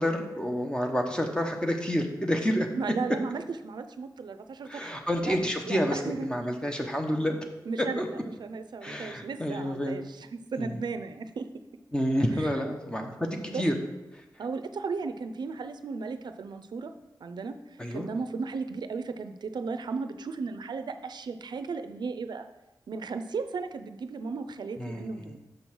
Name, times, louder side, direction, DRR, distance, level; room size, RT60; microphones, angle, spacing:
voice 1, 0.0-2.7 4.6-7.4 7.8-8.1 8.8-10.0 10.6-10.8 11.9-13.7 14.1-14.2 17.8-18.1 24.8-25.4, equal, 10° left, 3 dB, 1.0 m, -29 dB
voice 2, 2.7-5.4 5.7-6.3 7.7-11.5 12.3-12.5 13.5-13.6 14.4-16.9 17.2-22.4 22.9-25.4, right 4 dB, 85° right, 9 dB, 0.5 m, -35 dB
6.5 x 5.4 x 6.1 m, 1.0 s
wide cardioid pair, 105°, 7 cm